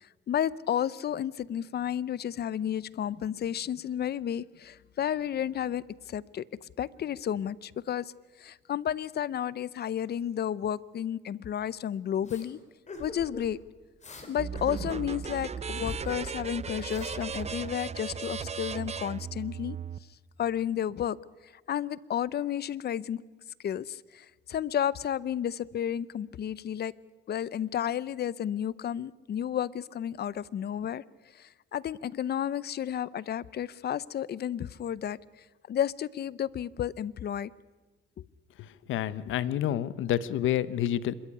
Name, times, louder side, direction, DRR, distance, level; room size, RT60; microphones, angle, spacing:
voice 1, 0.0-8.1 8.4-12.6 13.0-13.6 14.3-19.8 20.4-21.2 21.7-23.2 23.6-26.9 27.3-31.0 31.3-35.2 35.7-37.5 38.2-38.3, left 10 dB, 55° left, 21 dB, 0.7 m, -32 dB
sound 1, 12.2-12.5 12.9-13.5 14.0-14.3 14.6-15.5 15.8-16.3 16.6-18.0, left 2 dB, 35° left, 4.4 m, -43 dB
sound 2, 14.4-20.0, right 6 dB, 35° right, 0.7 m, -36 dB
voice 2, 38.6-41.1, left 11 dB, 80° left, 17 dB, 0.9 m, -29 dB
26.5 x 13.5 x 9.8 m, 1.3 s
cardioid pair, 90°, 20 cm